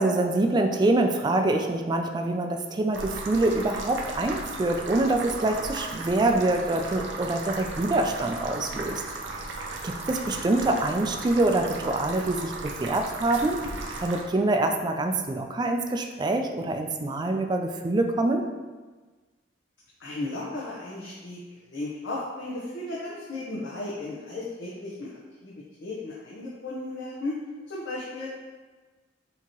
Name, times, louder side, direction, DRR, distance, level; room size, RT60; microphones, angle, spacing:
voice 1, 0.0-9.0 9.8-13.6 14.0-18.4, right 2 dB, 25° right, 5 dB, 0.3 m, -25 dB
sound 1, 2.9-14.2, right 2 dB, 90° right, 0.6 m, -36 dB
voice 2, 20.0-21.4 21.7-25.1 25.4-25.5 25.8-27.4 27.7-28.3, left 2 dB, 85° left, -6 dB, 0.8 m, -35 dB
5.8 x 2.9 x 2.9 m, 1.3 s
head